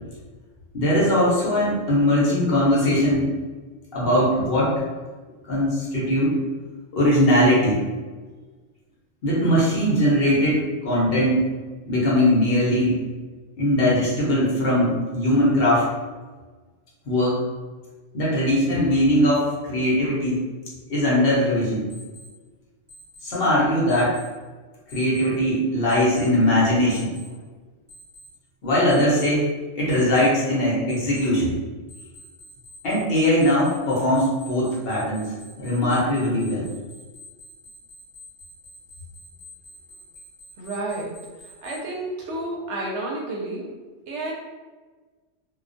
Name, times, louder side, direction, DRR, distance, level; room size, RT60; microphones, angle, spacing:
voice 1, 0.7-3.2 3.9-4.8 5.4-6.3 6.9-7.8 9.2-11.4 11.9-13.0 13.6-15.9 17.1-17.4 18.1-20.4 20.9-21.9 23.2-24.2 24.9-27.1 28.6-29.5 29.7-31.6 32.8-35.3 35.6-36.7, left 1 dB, 55° left, -6 dB, 0.8 m, -20 dB
Alarm, 21.9-22.3 22.9-23.3 23.9-24.3 24.9-25.3 25.9-26.3 26.9-27.3 27.9-28.3 28.9-29.3 29.9-30.3 30.9-31.3 31.9-41.8, left 1 dB, 15° right, 0.7 m, -46 dB
voice 2, 40.6-43.7 44.1-44.3, right 2 dB, 70° right, -2 dB, 0.8 m, -31 dB
2.3 x 2.2 x 2.5 m, 1.3 s
omnidirectional pair, 1.3 m